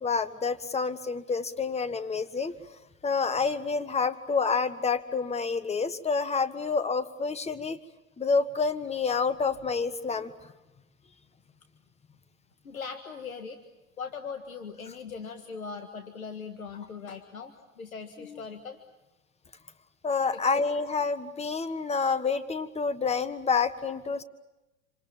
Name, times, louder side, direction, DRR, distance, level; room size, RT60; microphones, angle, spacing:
voice 1, 0.0-2.5 3.0-7.8 8.2-10.3 18.2-18.4 20.0-24.2, left 4 dB, 15° left, 12 dB, 1.6 m, -28 dB
voice 2, 12.6-13.6 14.0-18.8 20.4-20.7, left 5 dB, 85° left, 6 dB, 1.9 m, -40 dB
28.0 x 27.0 x 7.4 m, 1.0 s
hypercardioid pair, 95°, 41 cm